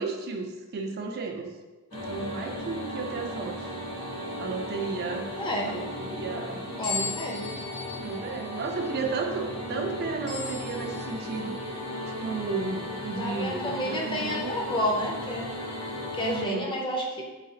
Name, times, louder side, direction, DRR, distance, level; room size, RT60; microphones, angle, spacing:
voice 1, 0.0-1.5 1.9-3.7 4.4-5.3 5.7-6.6 8.0-11.6 12.2-14.5 16.2-16.8, right 4 dB, 45° right, 3 dB, 0.4 m, -33 dB
sound 1, 1.9-16.4, equal, 80° left, 1.0 m, -36 dB
voice 2, 5.4-5.7 6.8-7.4 13.2-15.4 16.1-17.2, equal, 25° left, -1 dB, 0.6 m, -30 dB
sound 2, 6.8-11.7, left 5 dB, 60° left, 1.4 m, -38 dB
4.0 x 2.4 x 3.7 m, 1.2 s
head